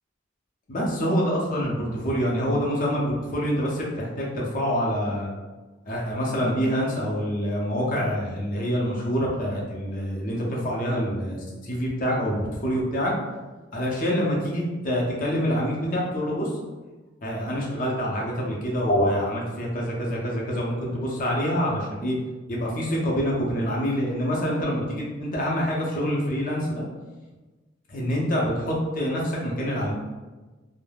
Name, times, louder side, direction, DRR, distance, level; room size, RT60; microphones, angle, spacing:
voice 1, 0.7-5.3 5.8-13.1 13.7-16.5 17.2-22.2 22.5-26.8 27.9-29.9, equal, 45° left, -3 dB, 0.6 m, -26 dB
2.3 x 2.0 x 3.3 m, 1.2 s
head